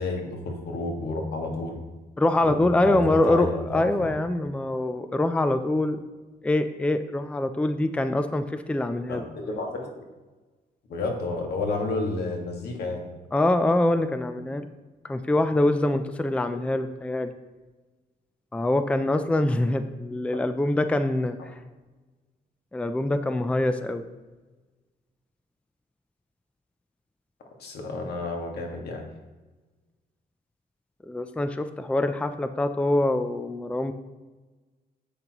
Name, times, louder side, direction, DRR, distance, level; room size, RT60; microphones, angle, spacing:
voice 1, 0.0-1.8 2.4-4.1 9.1-10.1 10.9-13.0 27.6-29.0, left 3 dB, 80° left, 2 dB, 1.8 m, -31 dB
voice 2, 2.2-6.0 6.4-9.2 13.3-14.7 15.0-17.3 18.5-21.4 22.7-24.0 31.0-33.9, left 1 dB, 5° left, 9 dB, 0.4 m, -24 dB
10.5 x 8.3 x 3.0 m, 1.2 s
cardioid pair, 125°, 16 cm